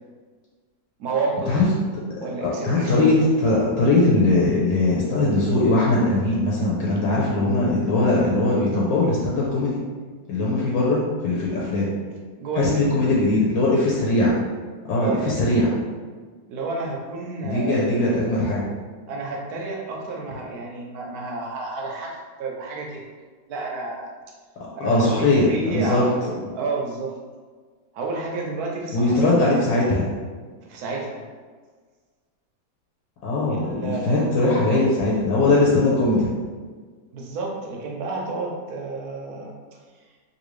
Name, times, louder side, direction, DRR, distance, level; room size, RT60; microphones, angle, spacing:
voice 1, 1.0-1.6 2.1-3.1 12.4-12.9 14.9-15.3 16.5-18.1 19.1-23.0 23.5-24.1 24.7-27.1 27.9-29.4 30.7-31.2 33.5-34.3 37.1-39.5, right 3 dB, 70° right, -1 dB, 0.9 m, -30 dB
voice 2, 2.4-9.8 10.3-11.9 12.6-14.3 14.9-15.7 17.4-18.7 24.8-26.0 28.9-30.1 33.2-36.3, left 2 dB, 75° left, -5 dB, 1.3 m, -20 dB
3.3 x 2.6 x 3.1 m, 1.5 s
omnidirectional pair, 2.2 m